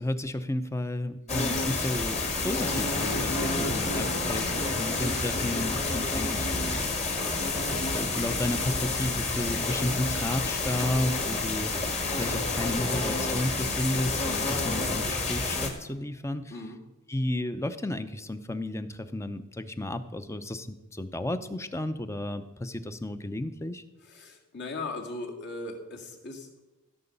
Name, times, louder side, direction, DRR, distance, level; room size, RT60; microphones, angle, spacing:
voice 1, 0.0-6.9 7.7-16.5 17.1-23.8, left 1 dB, 15° left, 10 dB, 0.6 m, -33 dB
sound 1, 1.3-15.7, left 3 dB, 30° left, 1.8 m, -29 dB
voice 2, 24.0-26.6, left 2 dB, 55° left, 1 dB, 2.1 m, -38 dB
15.0 x 6.9 x 5.4 m, 1.1 s
head